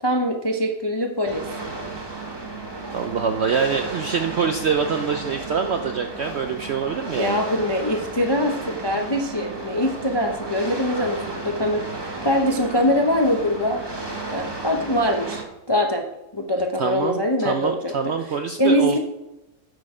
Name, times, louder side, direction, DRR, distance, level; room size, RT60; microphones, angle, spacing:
voice 1, 0.0-1.4 7.2-13.8 14.3-16.1 16.3-18.1 18.6-19.0, left 1 dB, 35° left, 3 dB, 0.4 m, -23 dB
sound 1, 1.3-15.4, right 3 dB, 20° right, 1.0 m, -33 dB
voice 2, 2.9-7.4 16.8-19.0, right 6 dB, 65° right, 6 dB, 0.6 m, -25 dB
9.6 x 6.3 x 4.9 m, 0.96 s
omnidirectional pair, 1.7 m